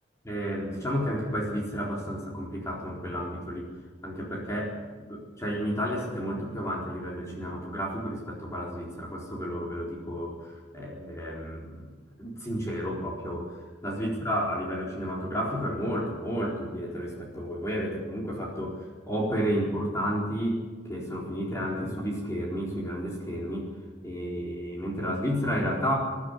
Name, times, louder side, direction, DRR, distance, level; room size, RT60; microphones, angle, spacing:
voice 1, 0.2-3.7 4.0-4.8 5.1-11.9 12.2-18.8 19.1-20.6 20.9-23.7 24.0-26.0, equal, 15° left, -3 dB, 4.1 m, -31 dB
23.0 x 12.0 x 9.9 m, 1.4 s
head